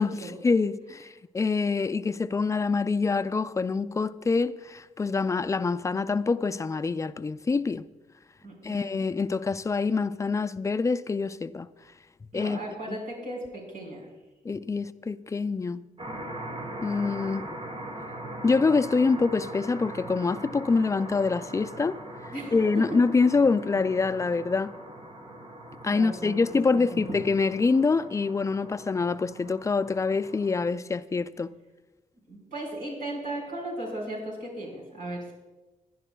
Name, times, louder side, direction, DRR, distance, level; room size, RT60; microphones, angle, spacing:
voice 1, 0.4-7.8 8.6-11.7 12.3-12.6 12.9-13.0 14.4-15.9 16.8-17.5 18.4-22.0 22.5-24.7 25.8-31.5, left 4 dB, 20° left, 0.4 m, -25 dB
voice 2, 8.4-9.1 12.3-14.1 22.3-23.0 25.9-26.6 26.9-27.0 32.3-35.3, right 1 dB, 80° right, 4.8 m, -36 dB
sound 1, 16.0-30.7, right 1 dB, 40° right, 2.2 m, -41 dB
22.5 x 11.0 x 2.3 m
cardioid pair, 110°, 14 cm